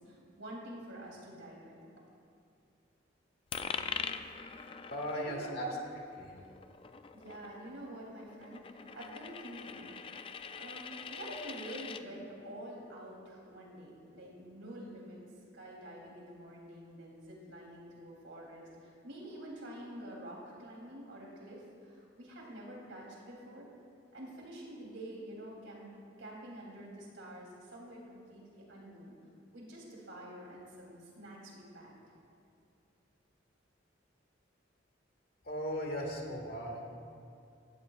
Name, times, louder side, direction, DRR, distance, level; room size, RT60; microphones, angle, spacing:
voice 1, 0.0-1.9 5.1-5.8 7.1-9.9 10.6-15.2 15.5-23.7 24.1-25.9 26.2-29.2 29.5-32.0, right 1 dB, 85° right, -3 dB, 3.1 m, -47 dB
Coin (dropping), 3.5-12.0, left 6 dB, 30° left, 0.3 m, -43 dB
voice 2, 4.9-5.7 6.2-6.5 10.1-10.2 35.4-36.8, equal, 55° left, 0 dB, 1.9 m, -38 dB
16.0 x 12.5 x 2.4 m, 2.5 s
head